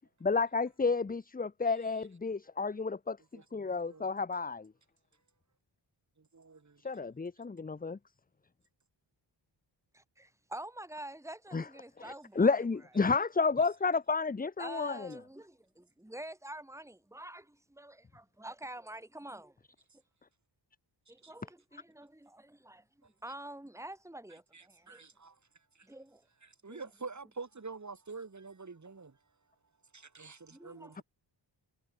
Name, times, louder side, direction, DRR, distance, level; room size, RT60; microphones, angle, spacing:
voice 1, 0.2-3.2 3.5-4.7 6.8-8.0 11.5-11.6 12.0-15.1, left 4 dB, 20° left, 0.7 m, -31 dB
voice 2, 3.3-4.1 6.2-6.8 21.2-21.3 24.3-25.4 25.7-25.9 26.4-29.2 29.9-31.0, right 4 dB, 40° right, 7.5 m, -47 dB
voice 3, 9.9-12.7 14.6-19.5 21.3-22.8 23.2-25.0 25.8-26.2 26.7-26.8 30.5-31.0, right 1 dB, 5° right, 4.4 m, -47 dB
wide cardioid pair, 100°, 46 cm